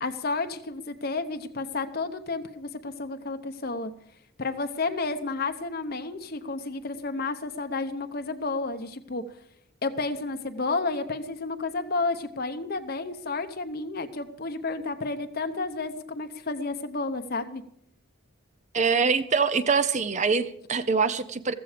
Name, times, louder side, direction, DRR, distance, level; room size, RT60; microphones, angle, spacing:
voice 1, 0.0-3.9 4.4-9.2 9.8-17.6, left 3 dB, 45° left, 8 dB, 0.8 m, -31 dB
voice 2, 18.7-21.5, right 5 dB, 35° right, 13 dB, 0.6 m, -24 dB
14.5 x 14.5 x 5.0 m, 0.72 s
head